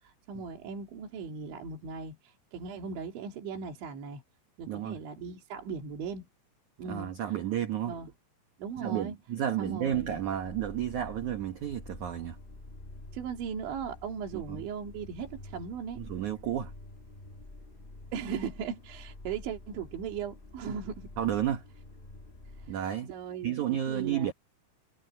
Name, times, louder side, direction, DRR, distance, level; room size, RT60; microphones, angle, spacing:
voice 1, 0.0-4.2 4.6-6.3 6.8-7.4 7.9-8.1 8.6-9.2 9.6-10.2 13.1-16.0 18.1-21.1 22.6-22.8 23.1-24.3, right 6 dB, 80° right, 5.1 m, -38 dB
voice 2, 4.7-5.0 6.9-7.9 8.8-12.4 14.3-14.6 16.0-16.7 21.2-21.7 22.7-23.1 23.4-24.3, right 10 dB, 60° right, 2.1 m, -31 dB
sound 1, 9.9-22.7, left 2 dB, 25° left, 1.0 m, -48 dB
omnidirectional pair, 5.2 m